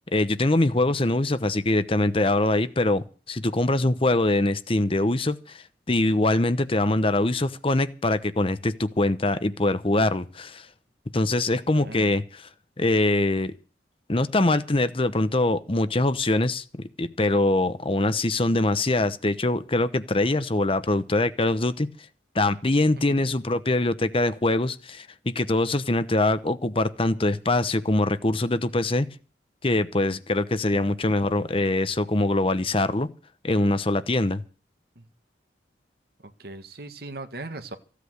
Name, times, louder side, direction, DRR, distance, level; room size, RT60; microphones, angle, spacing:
voice 1, 0.1-10.7 11.1-12.5 12.8-13.5 14.1-21.9 22.3-29.1 29.6-33.1 33.4-34.4, left 2 dB, 30° left, 13 dB, 0.9 m, -23 dB
voice 2, 11.8-12.1 23.0-23.2 30.7-30.8 34.9-35.0 36.4-37.8, right 2 dB, 60° right, 9 dB, 1.7 m, -39 dB
15.5 x 8.4 x 8.0 m, 0.37 s
head